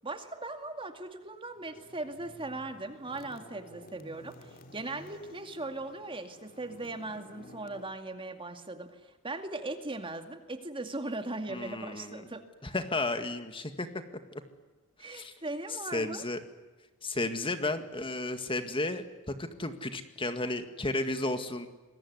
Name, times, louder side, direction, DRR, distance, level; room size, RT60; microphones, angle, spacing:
voice 1, 0.0-12.4 15.0-16.2, right 2 dB, 25° right, 7 dB, 2.3 m, -39 dB
sound 1, 1.5-7.8, left 1 dB, 40° left, 3.1 m, -53 dB
voice 2, 11.5-12.2 12.6-13.9 15.0-15.3 15.9-16.4 17.0-21.7, left 2 dB, 25° left, 8 dB, 2.0 m, -33 dB
27.0 x 22.0 x 9.6 m, 1.2 s
head